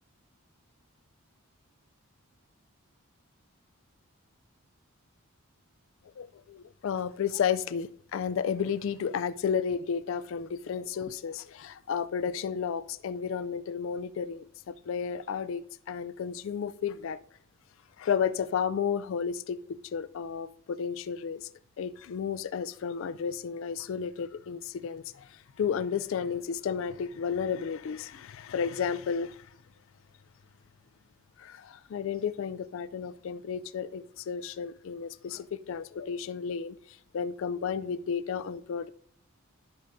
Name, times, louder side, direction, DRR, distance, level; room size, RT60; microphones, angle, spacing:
voice 1, 6.2-17.2 18.0-19.6 19.9-21.5 21.8-29.5 31.4-36.8 37.1-38.9, left 7 dB, 60° left, 0.3 m, -32 dB
11.0 x 8.5 x 2.6 m
head